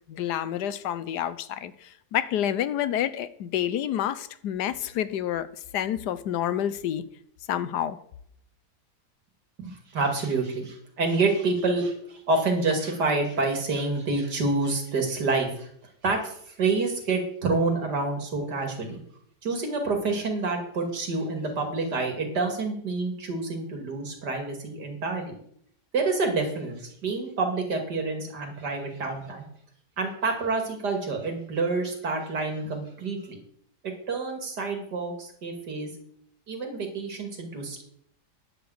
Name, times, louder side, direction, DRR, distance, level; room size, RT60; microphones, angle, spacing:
voice 1, 0.1-5.5 5.7-7.0 7.5-8.0, left 10 dB, 85° left, 1.3 m, -28 dB
voice 2, 9.6-15.7 16.0-19.0 19.4-25.4 25.9-29.4 30.0-33.4 33.8-35.9 36.5-37.8, right 3 dB, 85° right, 3.0 m, -28 dB
10.5 x 6.9 x 7.9 m
omnidirectional pair, 1.7 m